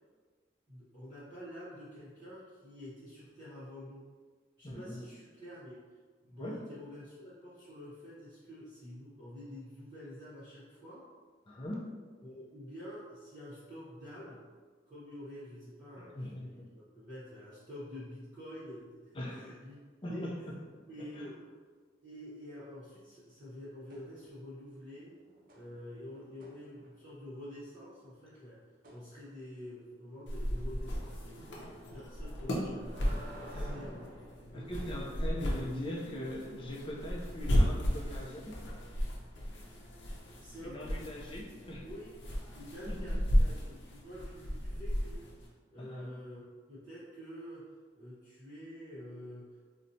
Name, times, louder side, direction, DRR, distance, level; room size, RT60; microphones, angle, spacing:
voice 1, 0.7-4.1 4.6-11.0 12.2-14.4 14.9-19.8 20.1-20.5 20.9-21.4 22.0-25.2 25.5-28.6 28.9-31.4 31.8-34.9 39.9-40.1 40.4-40.9 41.8-42.1 42.5-45.3 45.7-46.4 46.7-49.7, equal, 20° right, -14 dB, 0.8 m, -48 dB
voice 2, 4.6-5.1 6.4-6.6 11.5-11.9 16.0-16.7 19.1-19.6 20.0-20.3 20.7-21.3 33.5-34.0 34.5-38.6 40.6-41.8 42.9-43.0 45.8-46.1, left 1 dB, 30° left, -2 dB, 0.5 m, -41 dB
sound 1, 23.9-24.5 24.9-27.2 28.8-29.0 32.4-34.9 37.2-37.3, equal, 50° right, 0.5 m, -52 dB
sound 2, 30.3-45.5, equal, 65° left, 0.6 m, -34 dB
4.2 x 2.1 x 2.6 m, 1.5 s
head